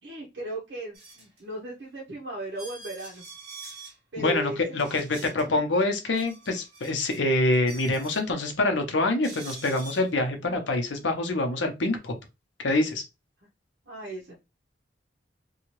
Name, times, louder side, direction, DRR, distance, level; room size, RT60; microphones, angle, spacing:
voice 1, 0.0-3.2 4.1-5.1 5.4-5.7 13.8-14.4, right 2 dB, 80° right, -2 dB, 0.8 m, -37 dB
sound 1, 0.9-1.4 2.0-2.1 2.5-4.0 4.8-5.5 5.9-7.2 7.5-8.3 9.2-10.1, right 3 dB, 60° right, 1.4 m, -45 dB
voice 2, 4.2-12.1 12.6-13.0, left 2 dB, 85° left, 5 dB, 0.8 m, -26 dB
2.7 x 2.3 x 3.0 m, 0.25 s
head